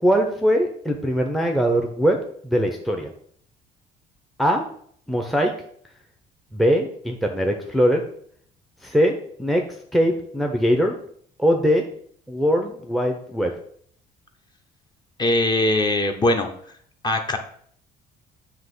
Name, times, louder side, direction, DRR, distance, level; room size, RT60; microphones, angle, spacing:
voice 1, 0.0-2.2 2.4-3.1 4.4-4.6 5.1-5.5 6.5-8.0 8.8-9.6 9.9-11.0 11.4-11.8 12.3-13.5, equal, ahead, 2 dB, 0.7 m, -21 dB
voice 2, 15.2-16.5 17.0-17.4, left 1 dB, 25° left, 4 dB, 1.0 m, -21 dB
7.7 x 3.0 x 6.0 m, 0.62 s
cardioid pair, 110°, 17 cm